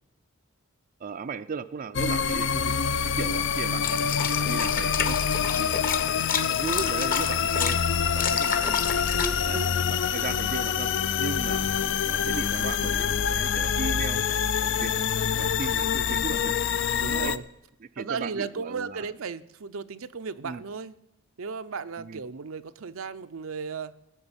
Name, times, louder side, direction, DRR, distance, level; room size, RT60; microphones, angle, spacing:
voice 1, 1.0-2.8 3.2-3.9 4.5-5.2 5.6-5.8 6.5-7.8 8.2-8.8 9.4-9.6 10.1-10.9 11.2-11.7 12.1-14.3 14.6-15.0 15.4-16.6 17.1-17.4 17.8-19.1 20.4-20.6 22.0-22.2, right 5 dB, 40° right, 11 dB, 0.4 m, -36 dB
sound 1, 1.9-17.4, left 7 dB, 60° left, 0.5 m, -26 dB
sound 2, 3.8-7.7 8.1-9.3, left 6 dB, 45° left, 1.1 m, -30 dB
voice 2, 9.1-9.7 17.0-17.4 18.0-20.9 21.4-24.0, right 5 dB, 80° right, 11 dB, 0.6 m, -35 dB
16.5 x 6.2 x 9.7 m, 0.86 s
head